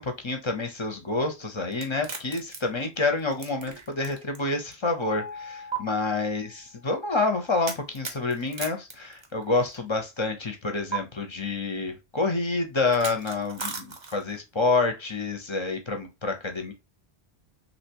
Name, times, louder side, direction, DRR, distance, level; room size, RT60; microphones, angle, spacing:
voice 1, 0.0-16.7, left 3 dB, 35° left, 0.6 m, -28 dB
sound 1, 1.7-4.4 4.7-4.8 5.7-5.8 7.6-9.8 10.9-11.0 12.9-14.4, right 5 dB, 30° right, 0.6 m, -36 dB
Mallet percussion, 5.1-7.0, left 6 dB, 90° left, 0.9 m, -42 dB
3.3 x 2.8 x 2.8 m
omnidirectional pair, 1.1 m